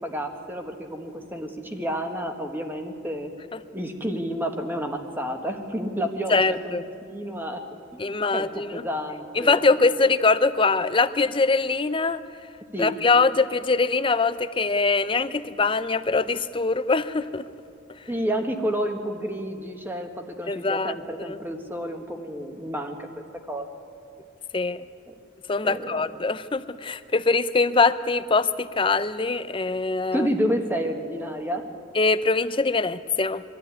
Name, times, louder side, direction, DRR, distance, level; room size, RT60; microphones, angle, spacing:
voice 1, 0.0-3.3 3.7-7.6 7.9-8.1 8.3-9.9 12.7-12.9 18.1-23.1 23.5-23.7 25.1-25.2 25.6-26.1 30.1-31.7, equal, 10° right, 5 dB, 1.5 m, -30 dB
voice 2, 6.3-6.8 8.0-8.8 9.3-12.2 12.8-17.5 20.5-20.9 21.3-21.4 24.5-24.9 25.5-30.3 31.9-33.4, left 3 dB, 25° left, 13 dB, 0.5 m, -23 dB
24.0 x 13.0 x 9.6 m, 2.4 s
head